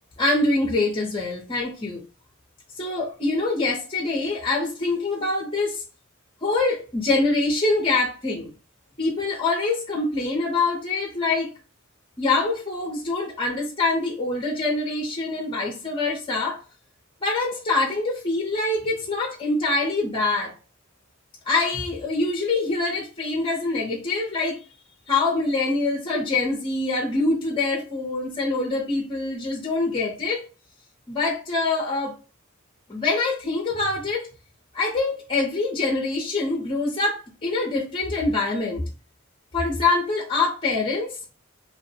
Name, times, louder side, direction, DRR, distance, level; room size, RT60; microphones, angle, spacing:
voice 1, 0.2-2.0 2.8-5.8 6.4-8.5 9.0-11.5 12.2-16.6 17.2-20.5 21.5-24.6 25.1-30.4 31.1-32.2 32.9-34.3 34.7-38.8 39.5-41.2, left 3 dB, 25° left, 0.6 m, -24 dB
2.7 x 2.1 x 2.7 m
head